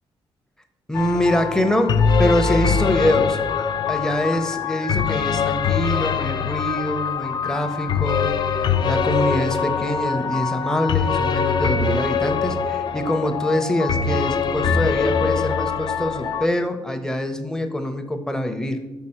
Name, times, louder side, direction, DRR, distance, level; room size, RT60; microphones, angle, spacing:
sound 1, 0.9-16.5, left 6 dB, 50° left, 0.4 m, -23 dB
voice 1, 0.9-3.4 3.9-18.8, left 1 dB, 5° left, 7 dB, 0.6 m, -24 dB
5.4 x 4.1 x 4.3 m, 1.1 s
cardioid pair, 95°, 10 cm